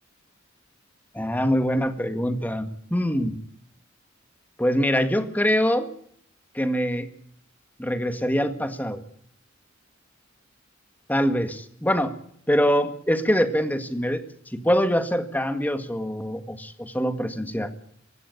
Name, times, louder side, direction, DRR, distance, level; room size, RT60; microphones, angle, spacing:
voice 1, 1.1-3.3 4.6-5.9 6.6-7.1 7.8-9.0 11.1-12.2 12.5-14.2 14.5-17.7, equal, 10° left, 9 dB, 1.8 m, -24 dB
18.0 x 16.5 x 9.4 m, 0.66 s
head